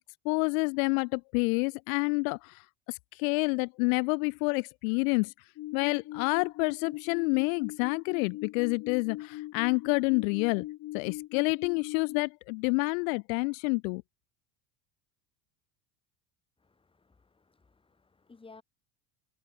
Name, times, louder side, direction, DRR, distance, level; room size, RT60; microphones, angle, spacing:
voice 1, 0.2-5.3 5.7-10.7 10.9-14.0, left 32 dB, 80° left, 0.9 m, -28 dB
sound 1, 5.6-12.3, left 16 dB, 45° left, 3.2 m, -41 dB
voice 2, 16.6-18.6, left 4 dB, 15° left, 6.7 m, -57 dB
cardioid pair, 145°, 40 cm